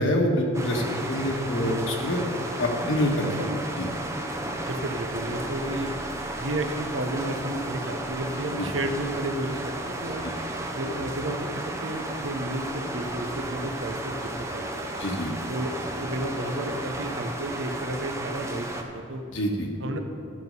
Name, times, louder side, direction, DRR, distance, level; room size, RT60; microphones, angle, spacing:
voice 1, 0.0-2.2 2.6-3.5 3.8-3.9 8.6-8.7 10.2-10.3 15.0-15.3 19.3-19.7, left 1 dB, 70° left, 1 dB, 1.4 m, -26 dB
sound 1, 0.5-18.8, right 1 dB, 15° right, 0.6 m, -33 dB
voice 2, 4.5-5.9 6.4-10.2 10.7-14.9 15.5-19.2 19.8-20.0, right 1 dB, 70° right, 6 dB, 0.9 m, -32 dB
13.5 x 6.1 x 5.4 m, 2.6 s
head